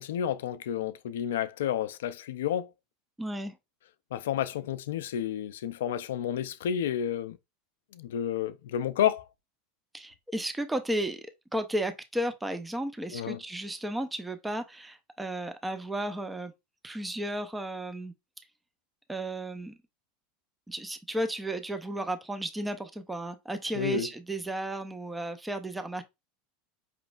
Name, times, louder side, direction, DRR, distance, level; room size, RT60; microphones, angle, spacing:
voice 1, 0.0-2.7 4.1-7.4 7.9-9.3 13.1-13.4 23.8-24.1, left 10 dB, 80° left, 0.4 m, -30 dB
voice 2, 3.2-3.6 9.9-16.5 16.8-18.1 19.1-19.7 20.7-26.0, right 1 dB, 10° right, 0.6 m, -34 dB
5.0 x 3.0 x 2.4 m
hypercardioid pair, 95°, 0 cm